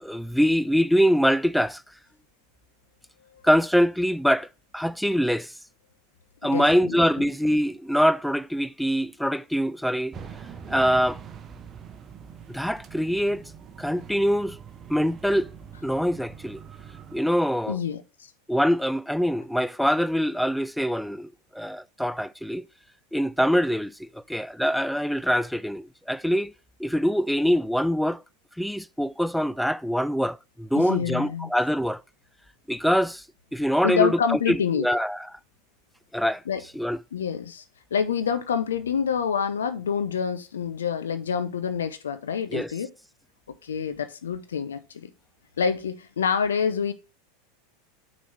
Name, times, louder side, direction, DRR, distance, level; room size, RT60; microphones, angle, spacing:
voice 1, 0.0-1.8 3.4-4.5 4.7-5.5 6.4-10.1 10.7-11.2 12.5-13.4 13.8-14.6 14.9-15.5 15.8-16.6 17.1-17.8 18.5-22.7 23.1-26.5 26.8-28.2 28.6-32.0 32.7-33.2 33.5-35.3 36.1-36.4 36.8-37.0 42.5-42.7, equal, ahead, 0.3 m, -24 dB
voice 2, 6.5-7.0 17.7-18.0 30.7-31.5 33.8-34.9 36.5-36.6 37.1-37.6 37.9-42.9 43.6-45.1 45.6-46.9, left 7 dB, 75° left, 0.7 m, -27 dB
sound 1, 10.1-17.2, right 7 dB, 30° right, 0.9 m, -43 dB
6.2 x 4.1 x 6.4 m
figure-of-eight pair, 85°, 0 cm